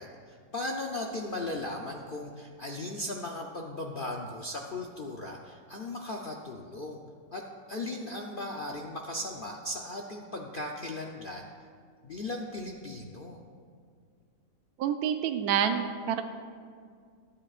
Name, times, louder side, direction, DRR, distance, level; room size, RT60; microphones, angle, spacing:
voice 1, 0.0-7.0 7.3-7.4 7.7-11.5 12.0-13.4, left 2 dB, 55° left, 1 dB, 0.6 m, -37 dB
voice 2, 14.8-16.2, right 8 dB, 70° right, 7 dB, 1.1 m, -28 dB
21.5 x 8.7 x 2.4 m, 2.2 s
omnidirectional pair, 1.8 m